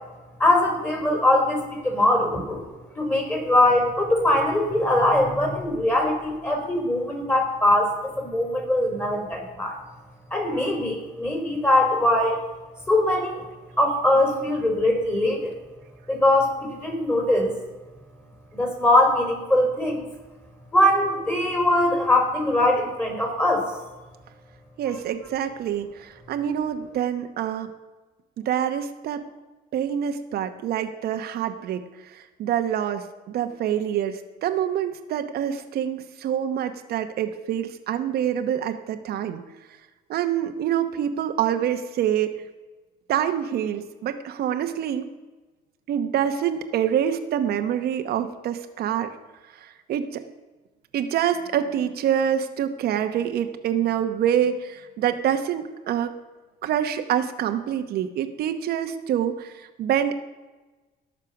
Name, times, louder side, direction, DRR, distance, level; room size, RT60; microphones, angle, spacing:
voice 1, 0.4-2.7 3.0-9.8 10.3-12.4 12.9-13.4 13.8-15.6 16.1-17.6 18.5-20.0 20.7-23.7 24.9-25.0, left 1 dB, 15° left, 1 dB, 4.5 m, -21 dB
voice 2, 24.8-27.7 28.4-29.2 29.7-39.4 40.1-42.3 43.1-45.1 45.9-49.1 49.5-50.2 50.9-56.1 56.6-60.2, right 9 dB, 70° right, 7 dB, 1.0 m, -26 dB
18.0 x 6.7 x 5.9 m, 1.2 s
cardioid pair, 110°, 17 cm